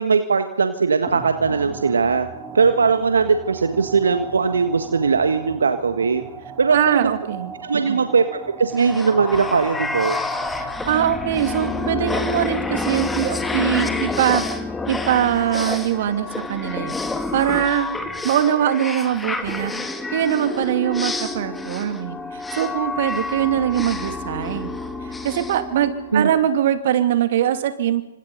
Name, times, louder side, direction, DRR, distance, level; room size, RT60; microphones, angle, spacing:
voice 1, 0.0-2.3 2.5-6.2 6.6-7.1 7.6-10.2 26.1-26.3, right 5 dB, 75° right, 8 dB, 1.6 m, -19 dB
sound 1, 1.0-12.4, right 6 dB, 15° right, 4.0 m, -38 dB
voice 2, 6.7-7.5 7.9-8.0 10.5-14.4 14.9-16.9 17.3-17.9 18.2-19.7 20.1-24.8 25.2-28.0, right 10 dB, 50° right, 8 dB, 2.6 m, -22 dB
sound 2, 8.8-26.4, left 3 dB, 5° left, 1.9 m, -28 dB
29.0 x 25.5 x 4.1 m, 0.97 s
figure-of-eight pair, 125°, 0 cm